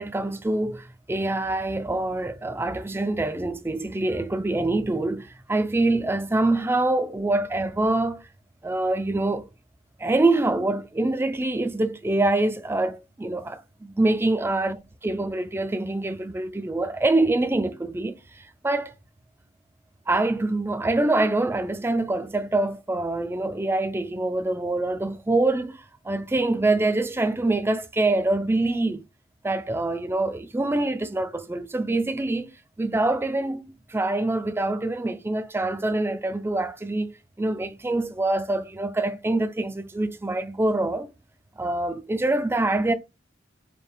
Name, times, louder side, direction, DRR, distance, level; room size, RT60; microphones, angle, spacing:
voice 1, 0.0-8.2 8.6-9.5 10.0-18.9 20.1-29.0 29.4-41.1 41.6-42.9, right 2 dB, 10° right, 0.4 m, -25 dB
4.4 x 2.2 x 3.3 m
head